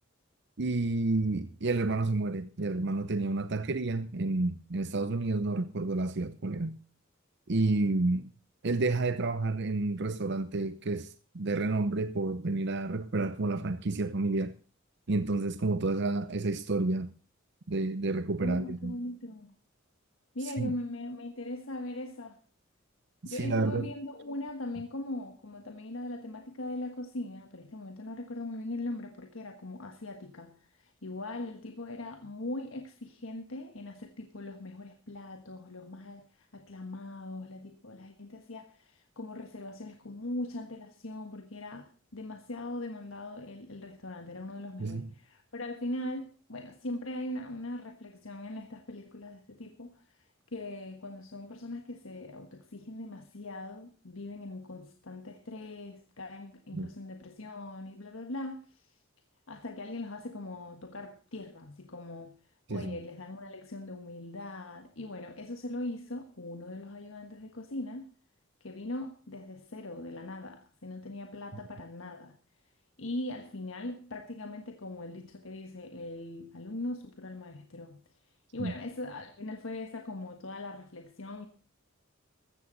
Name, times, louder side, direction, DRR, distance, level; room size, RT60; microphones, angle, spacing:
voice 1, 0.6-6.8 7.5-8.3 8.6-14.5 15.1-17.1 17.7-19.0 20.6-20.7 23.2-23.9 44.8-45.1 56.7-56.9 62.7-63.0 78.6-78.7, right 2 dB, 60° right, 0.8 m, -30 dB
voice 2, 18.4-19.5 20.3-22.4 23.2-58.9 59.5-62.4 62.7-68.1 68.6-72.4 73.0-78.0 78.5-81.5, left 2 dB, 85° left, 1.4 m, -40 dB
15.0 x 14.0 x 4.0 m
head